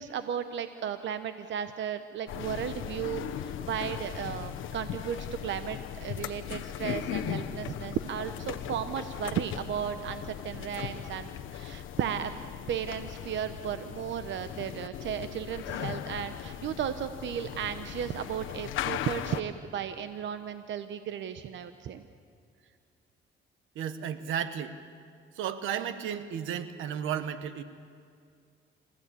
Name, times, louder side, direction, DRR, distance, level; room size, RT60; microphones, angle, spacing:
voice 1, 0.0-12.3 12.7-22.0, right 9 dB, 70° right, 10 dB, 1.0 m, -35 dB
sound 1, 2.3-19.4, left 10 dB, 80° left, 1.1 m, -38 dB
voice 2, 23.7-24.7 25.4-27.6, right 8 dB, 85° right, 11 dB, 1.3 m, -33 dB
28.0 x 15.5 x 8.4 m, 2.3 s
cardioid pair, 90°, 20 cm